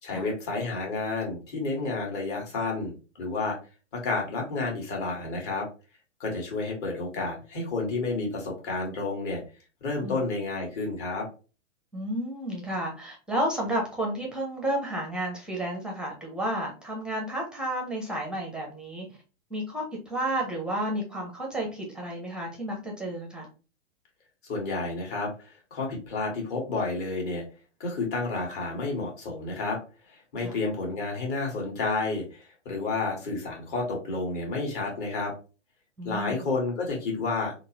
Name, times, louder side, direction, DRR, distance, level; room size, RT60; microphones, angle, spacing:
voice 1, 0.0-3.6 3.9-5.7 6.2-9.4 9.8-11.3 24.4-27.4 27.8-29.8 30.1-35.3 36.0-37.6, left 3 dB, 45° left, -1 dB, 1.6 m, -30 dB
voice 2, 11.9-19.1 19.5-23.5 30.4-30.5 36.0-36.5, right 1 dB, ahead, 0 dB, 0.5 m, -31 dB
3.7 x 2.0 x 2.8 m, 0.34 s
figure-of-eight pair, 110°, 37 cm